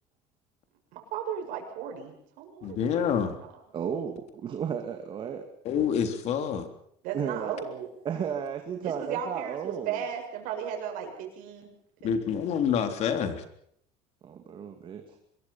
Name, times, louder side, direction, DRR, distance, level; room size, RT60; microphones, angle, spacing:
voice 1, 0.9-3.5 7.0-7.9 8.8-11.7 12.0-12.5, right 8 dB, 65° right, 3 dB, 7.1 m, -36 dB
voice 2, 2.6-3.4 5.7-6.7 12.0-13.4, left 7 dB, 50° left, 7 dB, 3.6 m, -27 dB
voice 3, 3.7-5.4 7.1-7.6 8.0-10.0 14.2-15.2, right 7 dB, 35° right, 5 dB, 2.4 m, -34 dB
25.0 x 22.0 x 5.8 m, 0.69 s
cardioid pair, 140°, 15 cm